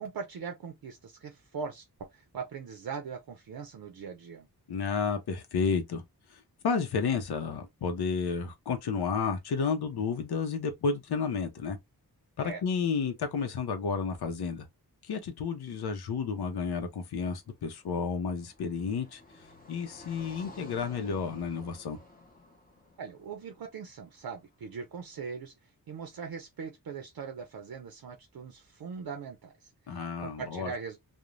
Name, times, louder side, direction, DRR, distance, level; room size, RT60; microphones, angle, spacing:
voice 1, 0.0-4.5 12.4-12.6 23.0-31.0, right 5 dB, 70° right, 0.6 m, -41 dB
voice 2, 4.7-6.0 6.3-11.8 12.4-14.7 15.0-19.2 19.7-22.0 29.9-30.7, left 5 dB, 85° left, 0.6 m, -31 dB
Car passing by, 17.3-24.4, left 2 dB, 25° left, 0.7 m, -53 dB
2.5 x 2.1 x 3.0 m
wide cardioid pair, 130°, 38 cm